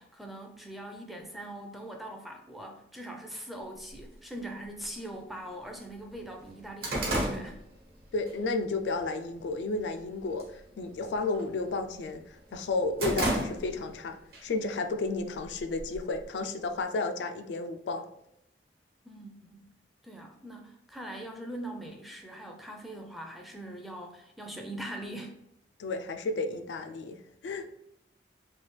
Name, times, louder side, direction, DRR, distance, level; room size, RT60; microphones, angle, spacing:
voice 1, 0.0-7.6 19.0-19.7 20.0-25.4, right 1 dB, ahead, 2 dB, 0.4 m, -42 dB
sound 1, 4.0-4.1 5.0-5.1 5.5-5.6 5.9-8.4 8.7-9.1 9.5-10.0 10.3-10.6 10.9-12.1 12.5-14.0 14.3-14.5 15.3-16.2, right 1 dB, 55° right, 1.0 m, -33 dB
voice 2, 8.1-14.2 14.4-18.0 25.8-27.2 27.4-27.7, left 3 dB, 85° left, 7 dB, 0.4 m, -32 dB
3.2 x 2.4 x 3.1 m, 0.80 s
head